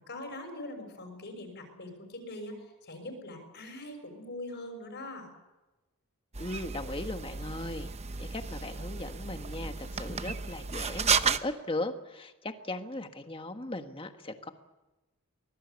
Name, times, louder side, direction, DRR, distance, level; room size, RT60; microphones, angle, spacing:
voice 1, 0.1-5.3, left 1 dB, 50° left, 3 dB, 6.2 m, -42 dB
sound 1, 6.3-11.4, right 6 dB, 30° right, 0.8 m, -33 dB
voice 2, 6.4-7.9 8.2-14.5, left 2 dB, 25° left, 7 dB, 1.6 m, -38 dB
24.0 x 20.5 x 8.3 m, 1.1 s
head